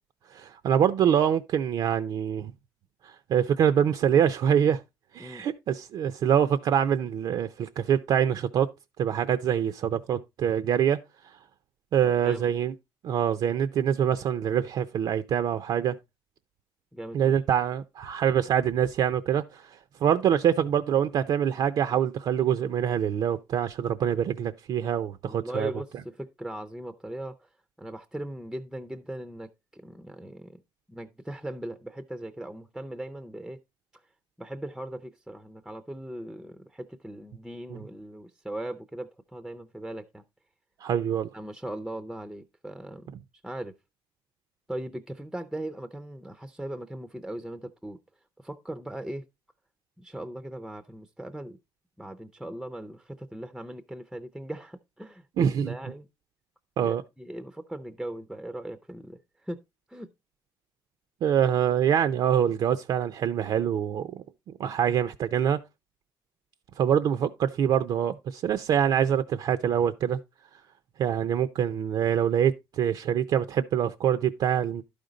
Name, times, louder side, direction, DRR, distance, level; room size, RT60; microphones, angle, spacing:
voice 1, 0.3-2.5 3.0-4.8 5.1-8.7 9.0-11.0 11.9-12.7 13.0-16.0 17.1-25.7 37.7-37.8 40.8-41.3 55.4-55.7 56.8-57.0 61.2-64.2 64.6-65.6 66.8-70.2 71.0-74.8, right 9 dB, 55° right, 0.5 m, -25 dB
voice 2, 12.0-12.5 16.9-17.3 25.3-27.5 27.8-30.6 30.9-33.6 33.9-34.0 34.4-40.2 41.3-43.1 43.4-43.8 44.7-48.0 48.4-49.3 50.0-51.6 52.0-56.1 56.8-59.6 59.9-60.1, right 1 dB, 5° right, 0.5 m, -39 dB
12.0 x 5.1 x 3.9 m
cardioid pair, 155°, 8 cm